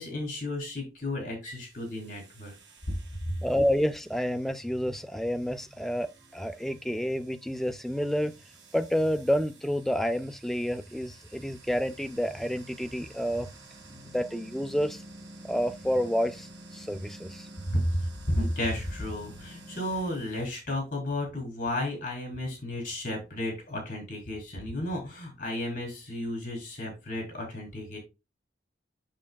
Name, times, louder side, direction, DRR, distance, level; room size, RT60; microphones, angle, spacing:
voice 1, 0.0-2.5 3.3-3.4 17.7-28.0, left 1 dB, 45° left, 3.9 m, -33 dB
sound 1, 1.4-20.5, right 1 dB, 75° right, 2.2 m, -51 dB
voice 2, 3.4-8.3 8.7-13.5 14.1-15.0 15.4-17.5, equal, ahead, 0.5 m, -29 dB
7.4 x 6.8 x 2.3 m
head